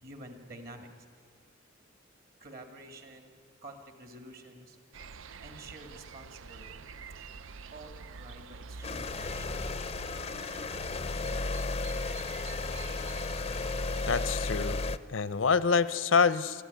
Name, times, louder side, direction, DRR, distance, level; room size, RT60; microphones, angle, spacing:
voice 1, 0.0-0.9 2.4-3.3 3.6-4.8 5.4-6.9 7.7-9.6, right 2 dB, 50° right, 5 dB, 2.2 m, -49 dB
sound 1, 4.9-14.9, right 5 dB, 90° right, 0.5 m, -47 dB
sound 2, 8.8-15.0, left 3 dB, 30° left, 0.5 m, -34 dB
voice 2, 14.1-14.8 15.1-16.6, left 5 dB, 85° left, 15 dB, 0.7 m, -26 dB
27.0 x 14.5 x 9.5 m, 2.3 s
head